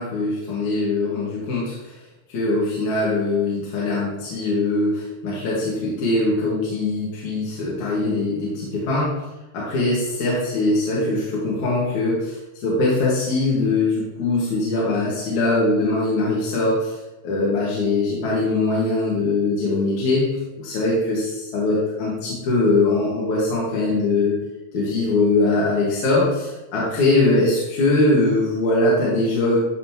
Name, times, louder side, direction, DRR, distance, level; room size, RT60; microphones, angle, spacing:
voice 1, 0.0-1.8 2.3-9.1 9.5-12.4 12.6-16.9 17.2-20.3 20.6-24.3 24.7-29.6, left 2 dB, 65° left, -7 dB, 3.1 m, -21 dB
12.5 x 5.5 x 3.1 m, 1.0 s
omnidirectional pair, 3.8 m